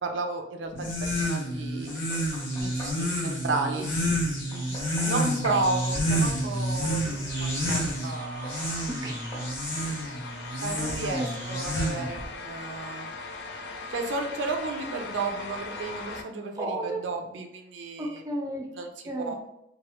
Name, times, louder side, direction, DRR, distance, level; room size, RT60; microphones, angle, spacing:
voice 1, 0.0-1.9 2.6-3.9 5.0-8.9 10.6-13.1 13.9-18.1 18.8-18.9 19.3-19.4, right 3 dB, 75° right, 5 dB, 0.5 m, -32 dB
sound 1, 0.7-12.3, equal, 85° left, 0.9 m, -29 dB
Knock, 1.9-3.0 4.5-5.7 7.7-7.9 8.4-8.6 9.3-9.5, equal, 25° left, 1.2 m, -42 dB
voice 2, 4.3-4.8 8.9-9.2 10.8-11.3 16.5-17.1 18.0-18.7 19.0-19.4, right 1 dB, 20° right, 0 dB, 0.4 m, -34 dB
sound 2, 6.2-16.2, left 3 dB, 60° left, 0.4 m, -41 dB
3.2 x 2.3 x 2.9 m, 0.81 s
head